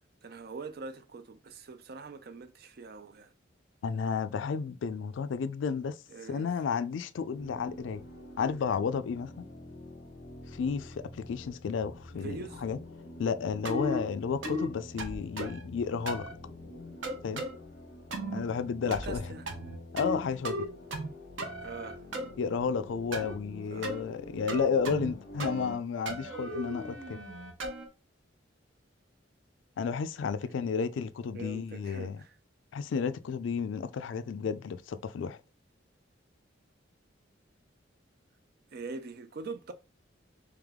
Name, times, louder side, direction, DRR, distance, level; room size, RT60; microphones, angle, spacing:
voice 1, 0.2-3.3 6.1-6.6 12.1-12.6 18.9-19.5 21.6-22.0 23.7-24.0 30.5-30.7 31.3-32.3 38.7-39.7, right 4 dB, 55° right, 0.5 m, -43 dB
voice 2, 3.8-6.0 6.3-8.0 8.4-9.5 10.5-12.8 13.2-16.3 17.2-17.4 18.3-19.2 19.9-20.7 22.4-27.2 29.8-32.2 32.7-35.4, left 6 dB, 75° left, 0.3 m, -32 dB
sound 1, 7.3-25.7, left 1 dB, 50° left, 1.3 m, -48 dB
sound 2, 13.6-14.0 14.4-14.7 15.0-15.6 16.1-16.3 17.0-17.5 18.1-18.4 18.9-19.2 19.5-20.2 20.4-21.1 21.4-22.3 23.1-23.4 23.8-24.0 24.5-25.1 25.4-25.8 26.1-27.9, equal, 85° right, 0.9 m, -36 dB
3.4 x 3.4 x 3.6 m
head